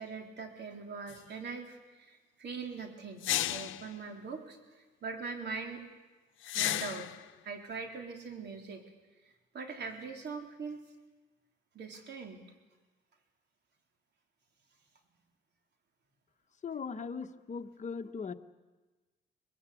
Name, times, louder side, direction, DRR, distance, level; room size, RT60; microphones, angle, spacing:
voice 1, 0.0-5.8 6.5-7.2 7.4-8.9 9.2-10.8 11.7-12.4, right 5 dB, 60° right, 4 dB, 3.9 m, -42 dB
sound 1, 1.1-1.2 3.2-3.9 6.4-7.2, left 14 dB, 80° left, 0.8 m, -33 dB
voice 2, 16.6-18.3, left 5 dB, 35° left, 6 dB, 1.3 m, -39 dB
23.5 x 20.0 x 8.5 m, 1.2 s
cardioid pair, 90°, 20 cm